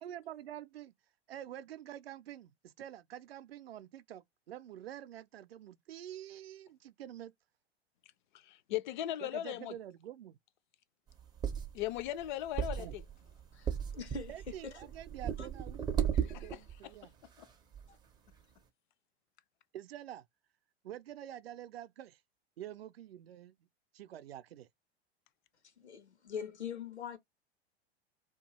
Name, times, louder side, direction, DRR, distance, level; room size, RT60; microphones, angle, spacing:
voice 1, 0.0-0.9 1.3-7.3 9.2-10.4 12.8-12.9 14.3-17.1 19.7-20.3 20.8-22.2 22.6-23.6 23.9-24.7, right 11 dB, 65° right, 0.5 m, -47 dB
voice 2, 8.4-9.7 11.7-13.0 16.1-16.6 17.4-17.5, left 13 dB, 45° left, 0.5 m, -38 dB
sound 1, 11.1-16.8 17.4-17.5 17.7-17.9, right 8 dB, 15° right, 0.5 m, -36 dB
voice 3, 13.5-14.3 14.6-14.7 15.4-15.5 17.9-18.0 25.8-27.2, left 6 dB, 80° left, 0.8 m, -42 dB
2.3 x 2.2 x 2.9 m
figure-of-eight pair, 90°, 33 cm